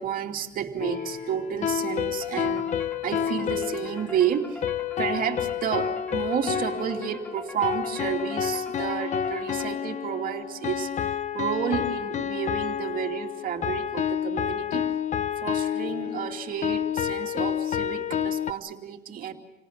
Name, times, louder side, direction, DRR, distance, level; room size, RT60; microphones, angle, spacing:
voice 1, 0.0-4.6 5.0-14.9 15.4-19.3, right 8 dB, 55° right, 3 dB, 2.7 m, -31 dB
sound 1, 0.8-18.5, left 9 dB, 45° left, 0.9 m, -29 dB
sound 2, 2.2-10.1, left 1 dB, 10° left, 1.4 m, -45 dB
28.5 x 19.0 x 7.2 m, 1.0 s
cardioid pair, 110°, 17 cm